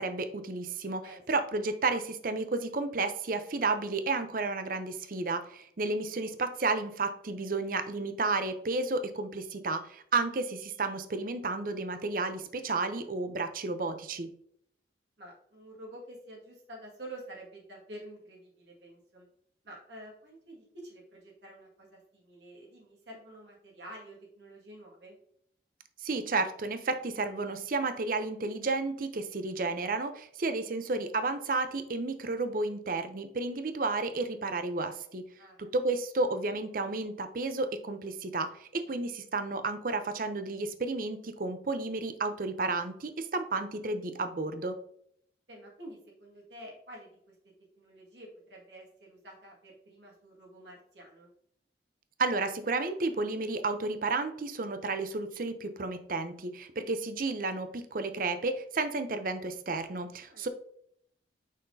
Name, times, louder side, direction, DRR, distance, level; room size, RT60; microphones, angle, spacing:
voice 1, 0.0-1.0 1.3-14.3 26.0-35.2 35.6-44.8 52.2-60.5, right 3 dB, 50° right, 10 dB, 0.6 m, -32 dB
voice 2, 15.2-19.3 19.6-25.2 35.4-35.6 38.9-39.0 45.5-47.3 47.8-51.3 60.3-60.5, right 1 dB, 75° right, -2 dB, 1.8 m, -49 dB
6.4 x 5.7 x 2.7 m, 0.67 s
head